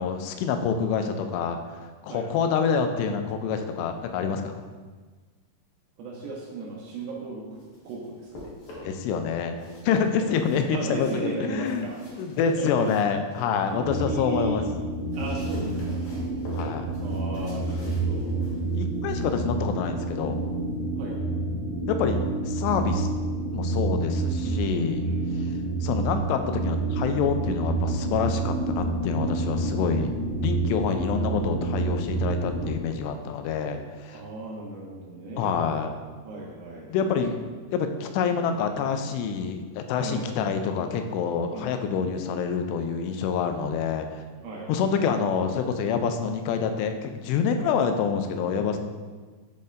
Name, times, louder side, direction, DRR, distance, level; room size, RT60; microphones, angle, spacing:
voice 1, 0.0-4.6 8.8-9.6 9.8-14.6 16.5-16.9 18.8-20.4 21.9-23.1 23.5-25.1 25.8-30.1 30.4-34.2 35.4-35.9 36.9-37.4 37.7-44.2 44.7-48.8, left 6 dB, 90° left, 6 dB, 2.7 m, -27 dB
voice 2, 6.0-7.4 7.8-8.5 10.2-10.3 10.7-12.0 12.6-13.0 13.7-14.6 15.1-16.0 17.0-18.5 21.0-21.3 24.4-25.3 34.1-35.6 36.2-37.4 40.0-40.4 41.5-42.1 44.4-44.9 47.6-47.7, right 3 dB, 75° right, -3 dB, 2.3 m, -36 dB
sound 1, 7.3-9.1 9.5-13.8 14.2-20.8, left 1 dB, 55° left, 2.3 m, -47 dB
sound 2, 13.8-32.7, right 2 dB, 60° right, 2.4 m, -28 dB
10.5 x 4.1 x 2.5 m, 1.4 s
omnidirectional pair, 4.8 m